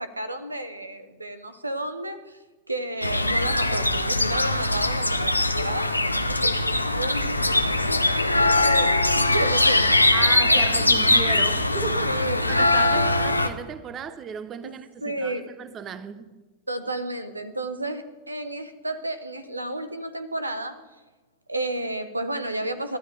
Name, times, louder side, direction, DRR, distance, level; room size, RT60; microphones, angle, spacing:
voice 1, 0.0-2.4 2.7-9.9 10.2-10.6 12.0-12.4 12.9-13.1 14.6-14.7 15.0-15.5 16.7-20.8 21.5-23.0, right 1 dB, 85° right, 1.0 m, -32 dB
sound 1, 3.0-13.5, left 2 dB, 85° left, 0.9 m, -21 dB
voice 2, 10.1-16.4, right 7 dB, 30° right, 0.9 m, -35 dB
28.5 x 13.0 x 3.4 m
figure-of-eight pair, 90°, 0 cm